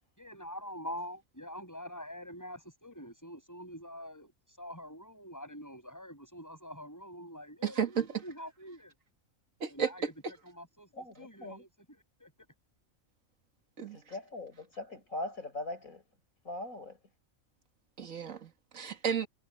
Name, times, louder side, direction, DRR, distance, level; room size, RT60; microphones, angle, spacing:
voice 1, 0.2-8.9 9.7-10.1 10.4-10.9 11.2-12.3, equal, 15° left, 7.3 m, -45 dB
voice 2, 7.6-8.1 9.6-9.9 13.8-14.0 18.0-19.3, right 7 dB, 75° right, 2.0 m, -32 dB
voice 3, 10.9-11.6 13.9-16.0 16.4-17.0, left 2 dB, 90° left, 6.8 m, -41 dB
omnidirectional pair, 1.4 m